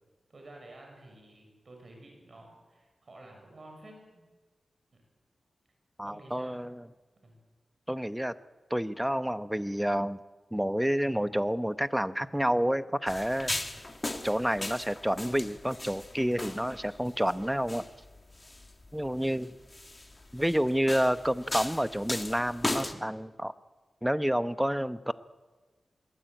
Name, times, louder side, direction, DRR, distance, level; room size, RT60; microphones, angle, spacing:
voice 1, 0.3-4.3 4.9-5.0 6.0-6.6 7.2-7.3 19.1-19.5, right 1 dB, 50° right, 2 dB, 6.9 m, -51 dB
voice 2, 6.0-6.9 7.9-8.4 8.7-10.2 10.5-13.5 14.2-17.8 18.9-19.5 20.3-23.5 24.0-25.1, equal, 5° right, 13 dB, 0.9 m, -29 dB
sound 1, 13.1-22.9, left 2 dB, 25° left, 2.0 m, -38 dB
21.5 x 20.5 x 9.3 m, 1.3 s
wide cardioid pair, 80°, 0 cm